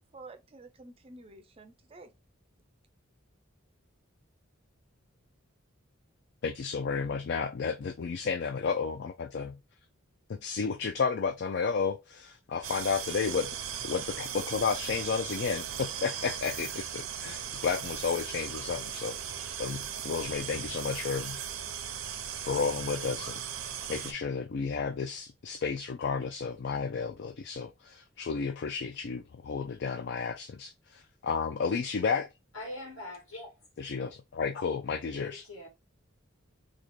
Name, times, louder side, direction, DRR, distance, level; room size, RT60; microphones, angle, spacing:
voice 1, 0.0-2.1, right 2 dB, 25° right, 0.4 m, -50 dB
voice 2, 6.4-9.6 10.3-21.4 22.4-32.3 33.8-35.5, left 5 dB, 55° left, 0.3 m, -32 dB
sound 1, 12.6-24.1, right 9 dB, 85° right, 0.6 m, -38 dB
voice 3, 32.5-33.5 34.5-34.6 35.1-35.7, left 2 dB, 70° left, 2.0 m, -42 dB
3.8 x 2.4 x 3.0 m
head